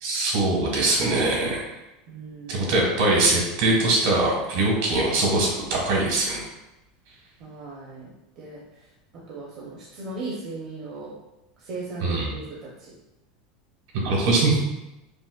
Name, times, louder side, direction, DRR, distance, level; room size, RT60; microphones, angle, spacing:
voice 1, 0.0-1.6 2.5-6.4 12.0-12.3 14.0-14.6, right 2 dB, 70° right, -2 dB, 1.2 m, -22 dB
voice 2, 2.1-2.7 7.4-8.1 8.4-8.6 9.1-11.2 11.6-12.9, right 3 dB, 40° right, -5 dB, 0.6 m, -37 dB
5.0 x 2.0 x 2.2 m, 0.95 s
supercardioid pair, 160°, 0 cm